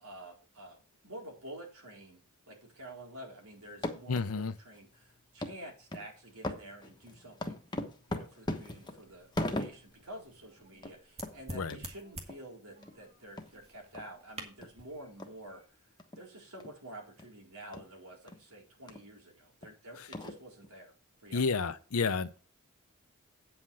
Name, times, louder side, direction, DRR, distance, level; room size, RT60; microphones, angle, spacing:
voice 1, 0.0-7.6 8.1-15.8 16.2-20.9 21.2-21.5, right 1 dB, 85° right, 4.2 m, -49 dB
sound 1, 3.6-4.3 4.7-4.8 5.4-5.6 5.9-6.1 6.4-10.0 10.4-10.5 10.7-11.0 11.2-11.3 11.7-11.8 12.3-12.4 12.8-12.9 13.4-13.5 13.9-14.0 14.6-14.7 15.2-15.3 16.0-16.2 16.6-16.8 17.2-17.3 17.7-17.9 18.3-18.4 18.9-19.0 19.6-19.7 20.1-20.7, left 1 dB, 20° left, 1.2 m, -38 dB
voice 2, 4.1-4.5 11.5-11.8 20.0-20.1 21.3-22.5, left 4 dB, 80° left, 0.7 m, -31 dB
sound 2, 8.8-15.7, right 2 dB, 30° right, 2.1 m, -50 dB
8.9 x 5.7 x 6.2 m
head